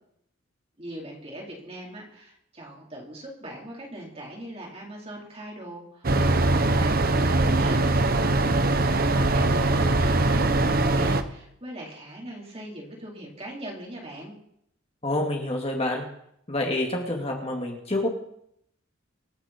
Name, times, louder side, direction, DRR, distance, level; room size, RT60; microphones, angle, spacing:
voice 1, 0.8-7.8 8.5-14.3, right 1 dB, 30° right, -2 dB, 4.5 m, -40 dB
sound 1, 6.0-11.2, right 2 dB, 50° right, 1.0 m, -22 dB
voice 2, 15.0-16.0 16.5-18.1, left 1 dB, 30° left, 0 dB, 2.5 m, -27 dB
26.5 x 9.2 x 4.6 m, 0.73 s
head